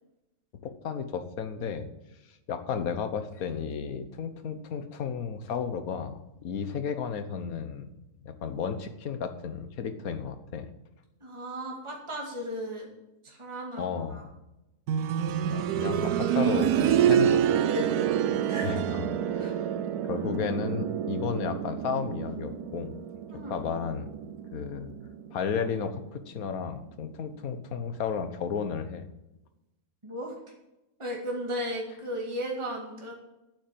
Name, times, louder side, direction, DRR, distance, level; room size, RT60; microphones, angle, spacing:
voice 1, 0.6-1.9 2.5-7.9 8.2-10.7 13.8-14.3 15.3-17.6 18.6-19.0 19.3-19.6 20.0-22.9 23.5-24.1 24.5-24.9 25.3-29.1, left 6 dB, 70° left, 10 dB, 1.5 m, -33 dB
voice 2, 11.2-12.9 13.2-14.2 17.7-17.9 18.5-18.7 19.4-19.5 23.3-23.6 30.0-30.4 31.0-33.1, equal, 20° right, -1 dB, 2.2 m, -35 dB
sound 1, 14.9-25.6 27.0-27.1, right 9 dB, 80° right, 1.1 m, -28 dB
9.2 x 8.0 x 7.6 m, 0.94 s
omnidirectional pair, 1.6 m